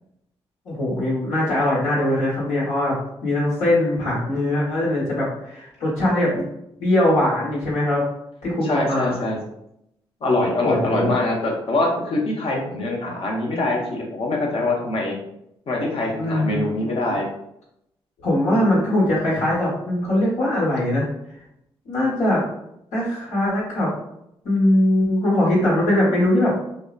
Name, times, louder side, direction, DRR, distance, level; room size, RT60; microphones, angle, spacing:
voice 1, 0.6-2.9 3.2-6.4 6.8-8.0 8.4-9.1 10.6-11.1 16.2-17.2 18.2-21.1 21.8-22.4 22.9-23.9 24.4-26.5, left 1 dB, 80° left, -7 dB, 1.3 m, -21 dB
voice 2, 8.6-9.4 10.2-15.1 15.7-17.3, left 2 dB, 55° left, -1 dB, 0.8 m, -23 dB
2.6 x 2.1 x 2.4 m, 0.79 s
supercardioid pair, 50°, 11 cm